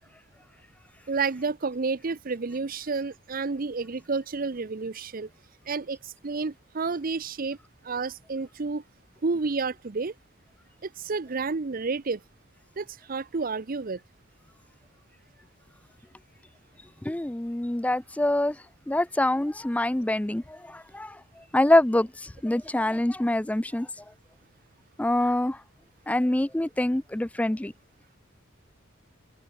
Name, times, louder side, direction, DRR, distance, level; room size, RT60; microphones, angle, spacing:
voice 1, 1.1-5.3 5.7-7.6 7.8-8.8 9.2-10.1 10.8-12.2 12.8-14.0, right 4 dB, 45° right, 0.6 m, -30 dB
voice 2, 17.0-18.6 18.9-23.9 25.0-25.6 26.1-27.7, left 1 dB, 5° left, 0.4 m, -25 dB
head